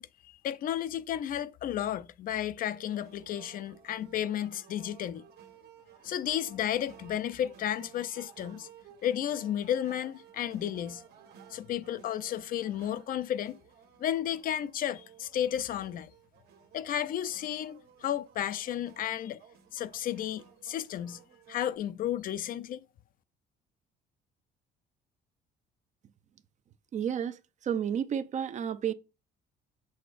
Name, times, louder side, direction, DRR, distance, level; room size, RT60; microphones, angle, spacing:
voice 1, 0.0-5.2 6.0-8.7 9.0-11.0 11.5-13.6 14.0-16.1 16.7-19.4 19.7-21.2 21.5-22.8, left 11 dB, 55° left, 0.5 m, -33 dB
sound 1, 2.5-21.8, right 8 dB, 70° right, 1.5 m, -56 dB
voice 2, 26.9-28.9, right 8 dB, 45° right, 0.6 m, -31 dB
6.8 x 6.3 x 2.5 m
cardioid pair, 110°, 17 cm